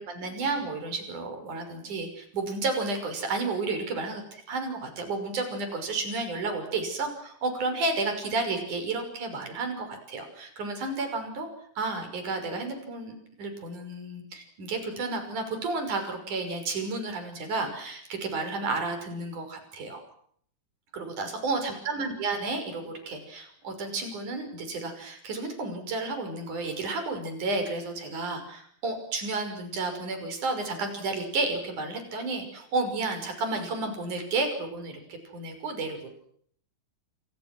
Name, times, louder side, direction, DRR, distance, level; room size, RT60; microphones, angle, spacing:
voice 1, 0.0-11.5 11.8-20.0 20.9-36.1, right 3 dB, 60° right, 6 dB, 7.4 m, -32 dB
28.5 x 28.0 x 6.3 m, 0.65 s
omnidirectional pair, 4.0 m